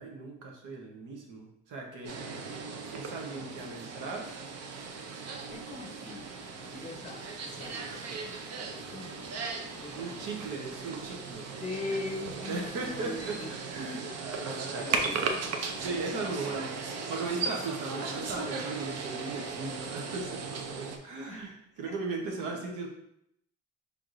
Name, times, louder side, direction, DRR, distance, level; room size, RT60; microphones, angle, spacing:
voice 1, 0.0-2.2 2.9-4.3 10.0-11.5 12.5-15.3 15.8-16.8 17.1-22.9, right 3 dB, 85° right, 0 dB, 1.0 m, -38 dB
sound 1, 2.0-21.0, right 4 dB, 55° right, 0.6 m, -37 dB
voice 2, 5.5-8.4 8.8-9.4 9.7-10.4 11.6-13.5 14.1-14.2 14.8-15.4 16.4-16.6 21.3-21.5 21.8-21.9, left 2 dB, 25° left, 4 dB, 0.7 m, -41 dB
sound 2, 6.1-13.4, right 1 dB, 20° right, 0.9 m, -57 dB
4.7 x 3.4 x 2.6 m, 0.75 s
cardioid pair, 90°, 30 cm